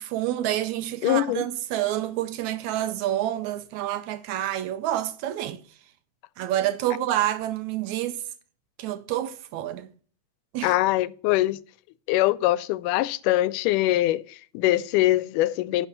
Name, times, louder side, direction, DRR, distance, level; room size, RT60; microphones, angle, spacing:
voice 1, 0.0-5.6 6.4-8.2 8.8-9.9 10.5-10.7, right 13 dB, 80° right, 1.8 m, -28 dB
voice 2, 1.0-1.5 10.6-11.6 12.1-15.9, left 16 dB, 90° left, 2.1 m, -23 dB
10.5 x 4.9 x 6.7 m
omnidirectional pair, 3.6 m